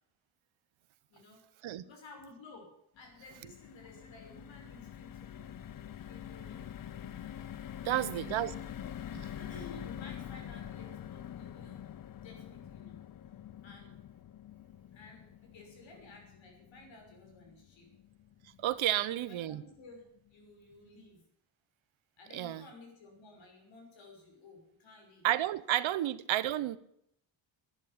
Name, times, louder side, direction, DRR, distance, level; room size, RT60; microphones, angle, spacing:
voice 1, 1.1-5.6 6.0-6.7 7.8-8.5 9.3-11.9 12.2-13.0 13.6-14.0 14.9-17.9 18.9-21.2 22.2-25.3 25.9-26.0, left 2 dB, 75° left, 2 dB, 6.0 m, -54 dB
sound 1, 3.0-19.3 19.7-19.8 20.1-20.3, left 10 dB, 45° left, 0.7 m, -46 dB
voice 2, 7.9-8.5 9.1-9.3 18.6-19.6 22.3-22.7 25.2-26.8, right 13 dB, 85° right, 16 dB, 1.0 m, -31 dB
11.5 x 9.9 x 10.0 m, 0.73 s
cardioid pair, 135°, 46 cm